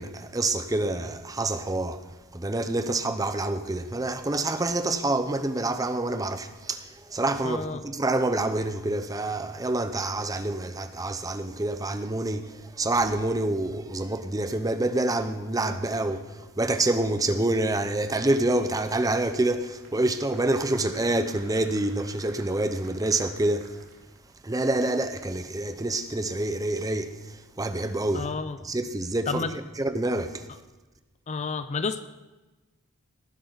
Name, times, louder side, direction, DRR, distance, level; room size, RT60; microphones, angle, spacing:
voice 1, 0.0-2.0 2.3-23.8 24.4-28.3 28.6-29.5 29.8-30.5, right 2 dB, 15° right, 0.6 m, -27 dB
voice 2, 7.4-7.8 28.1-28.6 29.3-29.6 31.3-32.0, left 4 dB, 30° left, 0.4 m, -30 dB
sound 1, 19.8-24.3 24.6-24.7, right 3 dB, 75° right, 2.7 m, -51 dB
19.0 x 10.5 x 4.0 m
head